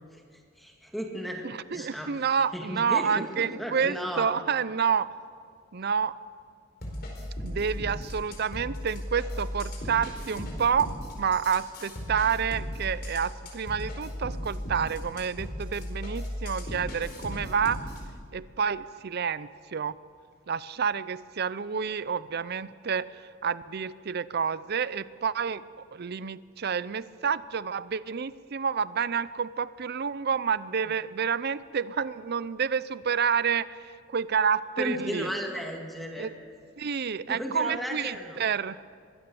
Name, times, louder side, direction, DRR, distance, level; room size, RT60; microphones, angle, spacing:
voice 1, 0.6-2.1 2.5-4.3 34.8-36.3 37.3-38.5, equal, ahead, 1 dB, 2.0 m, -34 dB
voice 2, 1.4-5.1 5.7-6.2 7.4-10.9 11.2-17.9 18.3-19.9 20.5-25.6 25.9-35.3 36.2-36.3 36.8-38.8, right 6 dB, 55° right, 16 dB, 0.5 m, -29 dB
sound 1, 6.8-18.1, equal, 55° left, 4.6 m, -36 dB
23.0 x 16.0 x 7.1 m, 2.1 s
head